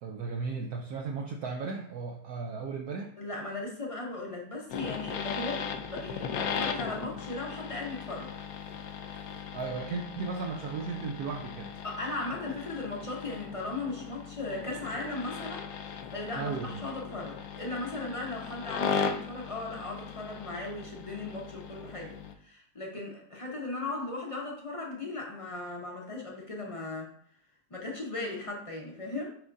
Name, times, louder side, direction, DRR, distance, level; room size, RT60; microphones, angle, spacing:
voice 1, 0.0-3.1 9.5-11.7 16.3-16.8, right 4 dB, 65° right, 1 dB, 1.1 m, -35 dB
voice 2, 3.2-8.3 11.8-22.2 22.4-27.1 27.7-29.3, left 2 dB, 25° left, -1 dB, 0.8 m, -37 dB
sound 1, 4.7-22.3, left 6 dB, 70° left, 0.9 m, -38 dB
10.5 x 3.6 x 2.6 m, 0.64 s
omnidirectional pair, 2.0 m